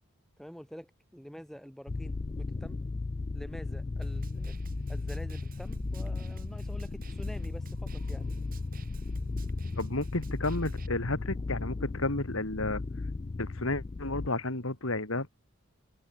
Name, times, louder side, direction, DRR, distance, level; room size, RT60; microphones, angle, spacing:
voice 1, 0.4-2.8 3.3-4.6 4.9-8.3, equal, ahead, 4.6 m, -47 dB
sound 1, 1.9-14.3, left 3 dB, 25° left, 0.3 m, -36 dB
Snare drum, 4.0-10.9, right 1 dB, 40° right, 4.1 m, -49 dB
voice 2, 9.8-12.8 13.4-15.3, left 2 dB, 65° left, 2.8 m, -32 dB
head